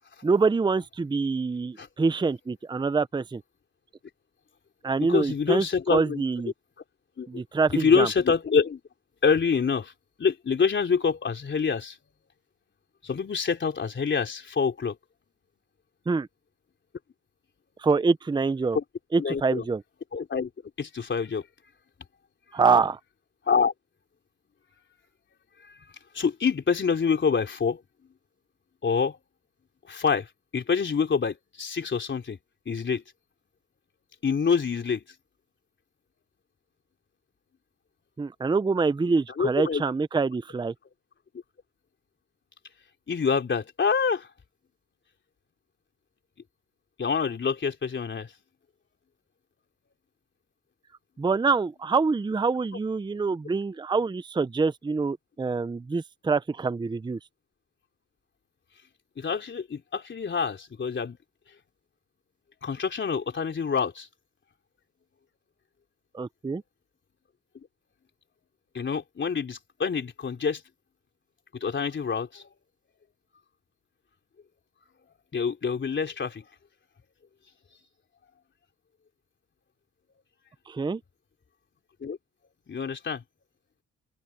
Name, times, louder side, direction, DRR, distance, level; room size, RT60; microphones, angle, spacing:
voice 1, 0.2-3.4 4.8-6.5 7.3-8.1 16.1-16.3 17.8-18.8 19.1-19.8 22.5-23.0 38.2-40.7 51.2-57.2 66.1-66.6 80.7-81.0, right 4 dB, 15° right, 0.6 m, -25 dB
voice 2, 5.0-6.2 7.2-7.3 7.7-8.8 9.2-9.9 10.2-12.0 13.0-15.0 18.7-18.8 19.2-19.7 20.1-20.5 20.8-21.4 23.5-23.7 26.1-27.8 28.8-29.2 29.9-32.4 32.7-33.0 34.2-35.0 39.4-39.8 43.1-44.3 47.0-48.3 59.2-61.2 62.6-64.1 68.7-70.6 71.6-72.5 75.3-76.4 82.0-82.2 82.7-83.2, left 6 dB, 40° left, 3.6 m, -26 dB
cardioid pair, 90°, 30 cm